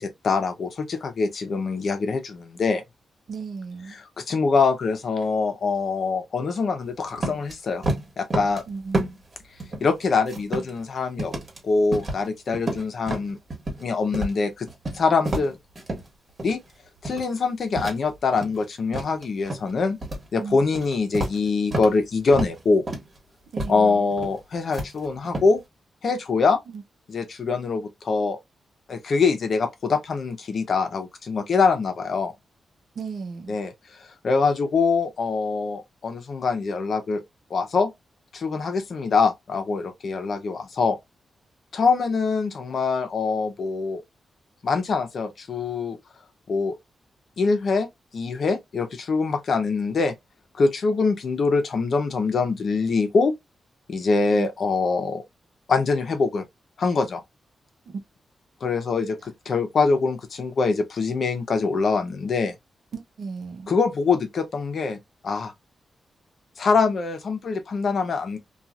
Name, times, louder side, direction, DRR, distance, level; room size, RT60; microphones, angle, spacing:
voice 1, 0.0-2.8 3.9-7.8 8.2-8.6 9.8-11.3 11.6-13.4 13.8-14.7 14.9-15.6 16.4-16.6 17.0-20.0 20.3-22.8 23.7-25.6 26.0-26.6 27.1-28.4 28.9-32.3 33.5-33.7 34.2-37.2 37.5-37.9 38.3-41.0 41.7-44.0 44.6-46.0 46.5-46.8 47.4-47.9 48.1-50.1 50.5-53.3 53.9-55.2 55.7-56.4 56.8-57.2 58.6-62.6 63.7-65.0 65.2-65.5 66.6-68.4, left 4 dB, 55° left, 0.7 m, -24 dB
voice 2, 3.3-4.0 8.7-9.0 20.4-20.6 23.5-24.1 26.7-26.8 33.0-33.5 54.3-54.5 57.9-58.0 62.9-63.7, right 5 dB, 60° right, 0.6 m, -35 dB
sound 1, 7.2-7.5 7.8-8.6 8.9-9.3 9.6-10.8 11.2-11.6 11.9-12.3 12.5-13.8 14.1-14.4 14.7-16.1 16.4-16.7 17.0-17.4 17.7-18.6 18.9-19.7 20.0-20.3 20.6-22.0 22.3-22.6 22.9-23.2 23.6-23.8 24.1-24.4 24.7-25.5, right 2 dB, 35° right, 1.3 m, -30 dB
2.9 x 2.4 x 2.4 m
wide cardioid pair, 140°, 0 cm